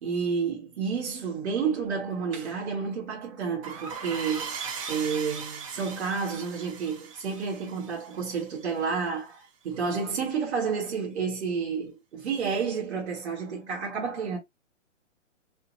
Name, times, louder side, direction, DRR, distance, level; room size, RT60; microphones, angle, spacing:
voice 1, 0.0-14.4, right 5 dB, 55° right, 1.7 m, -30 dB
sound 1, 3.6-8.9, right 6 dB, 25° right, 0.5 m, -39 dB
5.4 x 2.1 x 2.6 m
hypercardioid pair, 145°, 39 cm